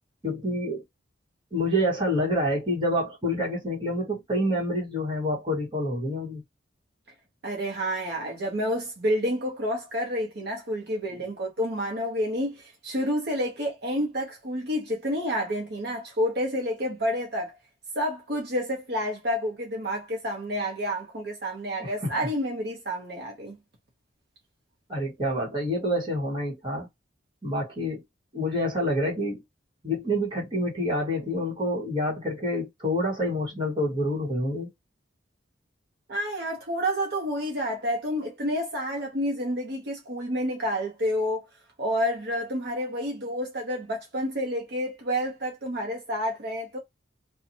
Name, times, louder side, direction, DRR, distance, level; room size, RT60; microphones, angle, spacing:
voice 1, 0.2-0.8 1.5-6.4 11.1-11.2 21.8-21.9 24.9-26.9 27.4-28.0 28.3-29.4 29.8-34.7, equal, 25° right, 1.3 m, -27 dB
voice 2, 7.4-17.5 18.0-23.6 36.1-41.5 41.8-46.8, equal, 55° right, 0.8 m, -29 dB
2.6 x 2.3 x 2.7 m
head